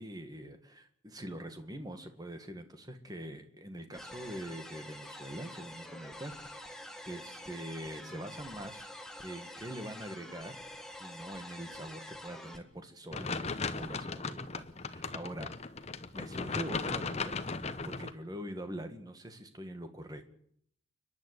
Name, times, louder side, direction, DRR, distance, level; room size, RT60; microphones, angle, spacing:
voice 1, 0.0-6.4 7.1-8.9 9.2-10.6 11.0-15.5 16.1-17.5 17.8-20.3, right 1 dB, 20° right, 7 dB, 1.8 m, -44 dB
sound 1, 3.9-12.6, left 1 dB, ahead, 1.7 m, -47 dB
sound 2, 13.1-18.1, left 4 dB, 30° left, 0.9 m, -37 dB
29.5 x 11.0 x 8.2 m, 0.67 s
head